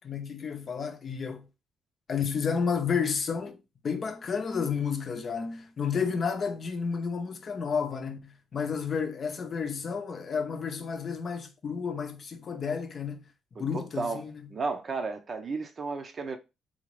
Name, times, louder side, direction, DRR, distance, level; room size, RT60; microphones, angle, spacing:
voice 1, 0.0-1.4 2.1-3.6 3.8-13.2 13.6-14.4, left 6 dB, 50° left, 0.6 m, -31 dB
voice 2, 13.7-14.2 14.5-16.4, right 4 dB, 45° right, 0.7 m, -33 dB
3.8 x 2.6 x 3.2 m
cardioid pair, 90°, 0 cm